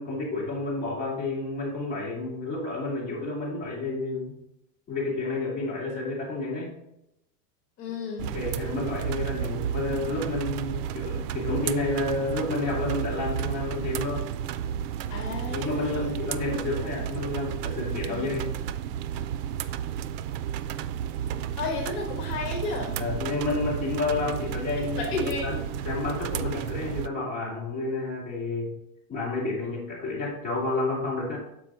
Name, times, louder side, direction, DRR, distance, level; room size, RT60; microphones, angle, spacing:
voice 1, 0.0-4.3 4.9-6.7 8.3-14.3 15.5-18.5 23.0-25.0 25.4-28.7 29.1-31.4, left 3 dB, 20° left, -7 dB, 2.8 m, -30 dB
voice 2, 7.8-8.3 15.1-16.1 18.1-18.2 21.6-22.9 25.0-25.5, left 4 dB, 55° left, 1 dB, 1.5 m, -32 dB
sound 1, 8.2-27.1, right 9 dB, 80° right, 0.6 m, -32 dB
7.2 x 4.9 x 3.7 m, 0.83 s
supercardioid pair, 155°, 46 cm